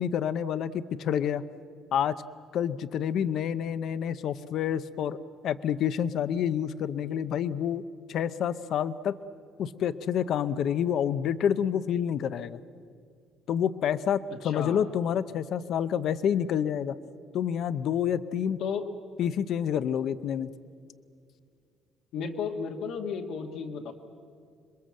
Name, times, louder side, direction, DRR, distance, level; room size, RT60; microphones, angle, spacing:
voice 1, 0.0-1.4 1.9-2.2 2.5-5.2 5.4-7.8 8.1-9.2 9.6-12.6 13.5-16.9 17.3-18.6 19.2-20.5, left 9 dB, 50° left, 13 dB, 0.7 m, -28 dB
voice 2, 14.4-14.8 18.6-18.9 22.1-23.9, left 6 dB, 70° left, 1 dB, 1.8 m, -33 dB
27.5 x 22.5 x 7.6 m, 2.3 s
cardioid pair, 165°, 0 cm